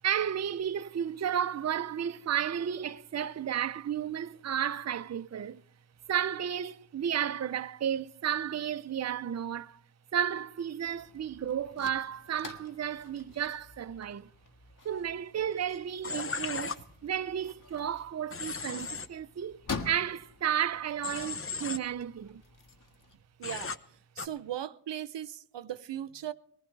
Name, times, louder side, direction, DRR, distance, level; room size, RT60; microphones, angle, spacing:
voice 1, 0.0-5.6 6.1-9.8 10.1-14.3 14.8-22.4, right 9 dB, 40° right, 0.5 m, -33 dB
sound 1, 10.8-23.2, left 4 dB, 50° left, 1.6 m, -47 dB
Human voice / Train, 16.0-16.7 18.3-19.1 21.0-21.8 23.4-23.8 24.2-24.3, left 4 dB, 30° left, 0.8 m, -36 dB
voice 2, 23.4-26.3, right 11 dB, 85° right, 0.7 m, -38 dB
21.5 x 15.5 x 3.2 m
wide cardioid pair, 90°, 42 cm